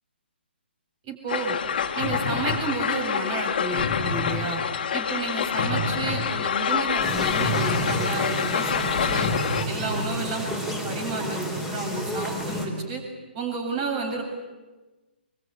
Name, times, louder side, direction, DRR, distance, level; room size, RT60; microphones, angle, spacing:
voice 1, 1.0-1.6 1.9-4.6 4.9-9.3 9.7-13.0 13.3-14.2, right 3 dB, 35° right, 4 dB, 7.6 m, -31 dB
sound 1, 1.3-9.7, left 6 dB, 55° left, 2.3 m, -26 dB
sound 2, 7.0-12.7, equal, 5° right, 4.4 m, -31 dB
24.0 x 24.0 x 9.8 m, 1.2 s
figure-of-eight pair, 140°, 6 cm